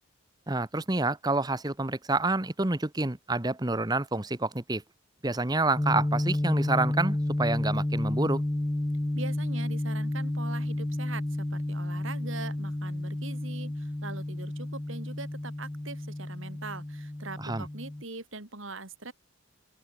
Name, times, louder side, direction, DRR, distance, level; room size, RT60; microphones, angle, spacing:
voice 1, 0.5-4.8 5.2-8.4 17.4-17.7, right 2 dB, 20° right, 0.9 m, -28 dB
sound 1, 5.8-18.0, left 1 dB, 10° left, 0.3 m, -31 dB
voice 2, 9.1-19.1, right 3 dB, 65° right, 3.5 m, -42 dB
open air
head